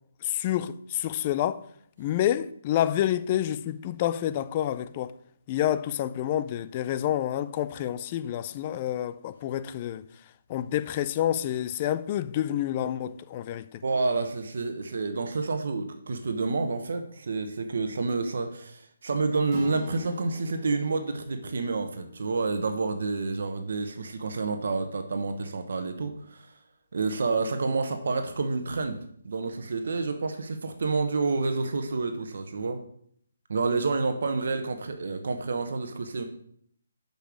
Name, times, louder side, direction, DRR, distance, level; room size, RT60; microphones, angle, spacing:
voice 1, 0.2-1.6 2.0-5.1 5.5-10.0 10.5-13.8, left 11 dB, 30° left, 0.4 m, -28 dB
voice 2, 13.8-26.5 26.9-29.0 29.2-32.8 33.5-36.2, right 3 dB, 65° right, 1.0 m, -29 dB
sound 1, 19.5-24.0, left 1 dB, 20° right, 2.2 m, -43 dB
6.8 x 5.3 x 6.2 m
figure-of-eight pair, 150°, 0 cm